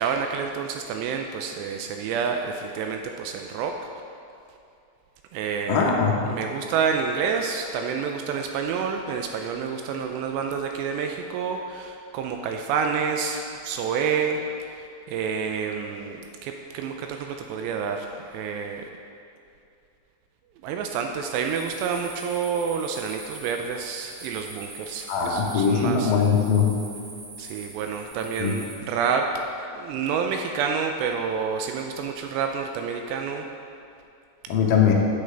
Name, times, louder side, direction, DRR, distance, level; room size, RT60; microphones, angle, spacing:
voice 1, 0.0-3.8 5.3-5.9 6.3-18.9 20.6-26.1 27.4-29.3 29.7-33.5, right 6 dB, 85° right, 3 dB, 2.6 m, -28 dB
voice 2, 5.7-6.2 25.1-26.7 28.4-28.5 34.5-34.9, left 6 dB, 75° left, -2 dB, 2.1 m, -21 dB
sound 1, 21.3-28.8, right 2 dB, 65° right, 1.9 m, -43 dB
9.3 x 8.2 x 3.3 m, 2.5 s
omnidirectional pair, 5.1 m